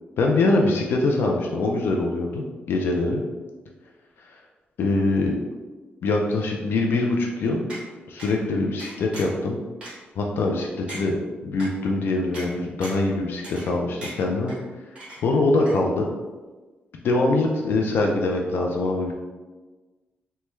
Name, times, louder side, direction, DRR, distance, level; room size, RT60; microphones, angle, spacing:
voice 1, 0.2-3.2 4.8-5.4 6.0-7.7 8.1-9.6 10.2-11.2 11.4-14.5 15.1-16.1 17.0-19.1, left 2 dB, 70° left, 1 dB, 0.4 m, -23 dB
sound 1, 7.7-7.8 8.2-8.3 8.8-9.4 9.8-9.9 10.4-10.5 10.9-11.0 11.6-11.7 12.3-12.5 12.8-13.1 13.4-13.7 14.0-14.6 15.0-15.4 15.7-15.8, right 1 dB, 25° right, 1.2 m, -38 dB
3.2 x 2.2 x 3.0 m, 1.3 s
wide cardioid pair, 140°, 4 cm